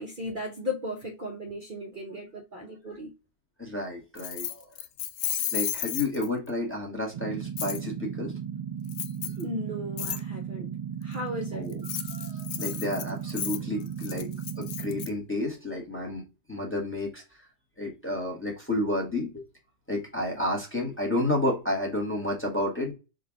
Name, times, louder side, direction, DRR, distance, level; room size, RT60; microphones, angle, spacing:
voice 1, 0.0-3.1 9.4-10.7 11.0-11.7, left 1 dB, 45° right, 0.8 m, -36 dB
voice 2, 3.6-4.7 5.5-8.3 11.5-14.3 14.6-16.2 16.5-17.2 17.8-19.4 19.9-22.9, left 1 dB, 10° left, 1.3 m, -31 dB
Keys jangling, 4.2-6.5 7.6-7.8 8.9-9.4 10.0-10.2 11.7-15.1, left 11 dB, 90° left, 1.0 m, -33 dB
sound 1, 7.1-15.1, right 8 dB, 85° right, 0.3 m, -36 dB
3.8 x 2.6 x 4.7 m
omnidirectional pair, 1.4 m